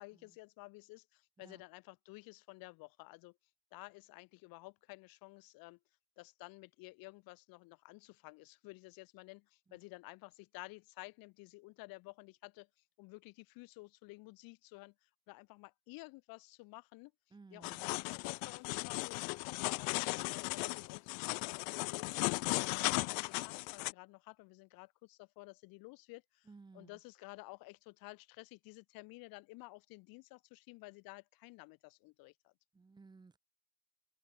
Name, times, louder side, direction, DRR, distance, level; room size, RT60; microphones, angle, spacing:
voice 1, 0.0-3.4 3.7-5.8 6.2-12.7 13.0-17.1 17.5-19.2 19.6-22.2 22.6-26.5 26.7-32.5, left 24 dB, 60° left, 2.0 m, -53 dB
voice 2, 17.3-17.8 26.5-27.0 32.7-33.4, right 4 dB, 10° right, 1.7 m, -57 dB
sound 1, 17.6-23.9, left 40 dB or more, 85° left, 0.7 m, -36 dB
cardioid pair, 170°, 40 cm